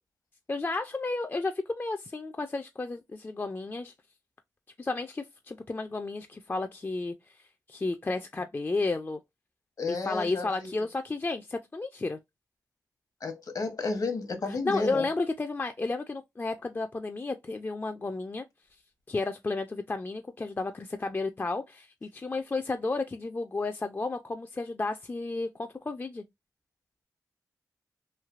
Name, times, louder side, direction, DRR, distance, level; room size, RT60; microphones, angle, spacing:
voice 1, 0.5-3.9 4.8-7.2 7.7-9.2 9.9-12.2 14.5-18.4 19.1-26.2, left 3 dB, 30° left, 0.4 m, -32 dB
voice 2, 9.8-10.7 13.2-15.1, left 3 dB, 60° left, 0.9 m, -32 dB
3.1 x 2.7 x 2.4 m
cardioid pair, 55°, 7 cm